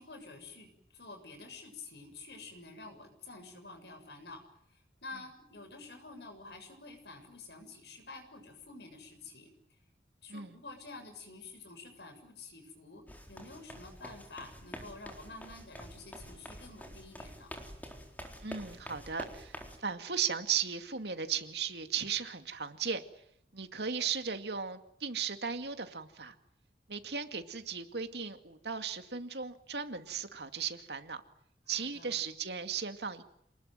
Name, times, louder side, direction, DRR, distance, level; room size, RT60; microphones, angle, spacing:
voice 1, 0.0-4.4 4.7-9.5 10.2-17.5 31.7-32.2, left 3 dB, 75° left, 7 dB, 7.1 m, -49 dB
sound 1, 13.1-19.8, equal, 10° left, 4.0 m, -47 dB
voice 2, 18.4-23.0 23.5-26.3 26.9-31.2 31.7-33.2, right 7 dB, 75° right, 8 dB, 2.3 m, -36 dB
28.5 x 20.0 x 9.2 m, 0.73 s
head